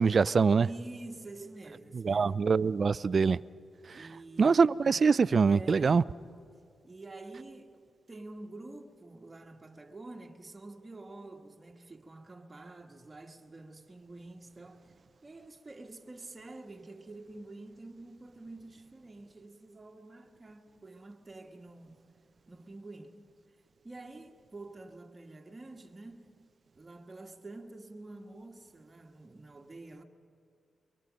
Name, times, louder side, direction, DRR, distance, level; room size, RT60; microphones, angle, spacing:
voice 1, 0.0-0.7 1.9-3.4 3.9-4.1 4.4-6.0, right 5 dB, 50° right, 0.4 m, -24 dB
voice 2, 0.6-2.4 3.9-4.7 5.5-6.1 6.8-14.9 15.2-22.0 22.5-23.3 23.8-26.3 26.7-30.0, right 2 dB, 25° right, 1.6 m, -48 dB
24.0 x 23.0 x 5.2 m
cardioid pair, 70°, 0 cm